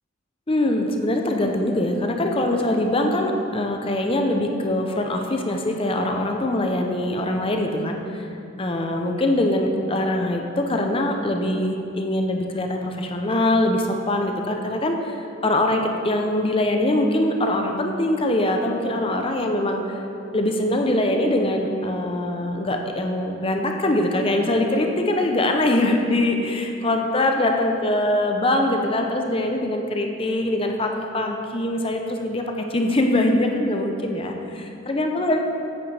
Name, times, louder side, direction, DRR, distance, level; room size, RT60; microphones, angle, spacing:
voice 1, 0.5-8.3 8.6-20.0 20.3-32.4 32.7-35.4, left 1 dB, 25° left, 3 dB, 0.6 m, -23 dB
8.6 x 8.5 x 3.3 m, 2.7 s
head